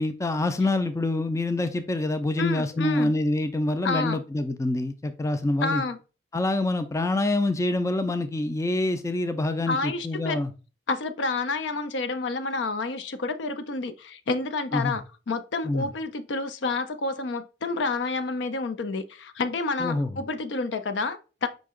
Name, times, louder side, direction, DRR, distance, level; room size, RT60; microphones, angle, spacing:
voice 1, 0.0-5.8 6.3-10.5 14.7-15.0 15.6-15.9 19.8-20.1, left 2 dB, 15° left, 0.3 m, -26 dB
voice 2, 2.4-3.1 3.8-4.2 5.6-6.0 9.7-10.4 10.9-15.0 15.3-21.5, left 3 dB, 70° left, 0.5 m, -29 dB
5.2 x 2.8 x 3.6 m
head